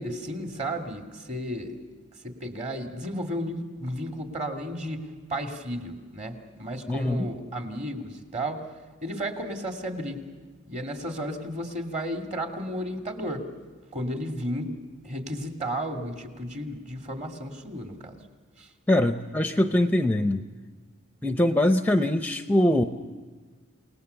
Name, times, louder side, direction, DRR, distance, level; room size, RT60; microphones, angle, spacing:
voice 1, 0.0-1.8 2.2-8.6 9.0-10.3 10.7-13.5 13.9-14.8 15.0-18.2 18.6-18.7, equal, 35° right, 3 dB, 2.6 m, -33 dB
voice 2, 6.9-7.3 18.9-20.4 21.2-22.8, left 1 dB, 10° left, 7 dB, 0.7 m, -22 dB
29.0 x 19.0 x 7.0 m, 1.4 s
head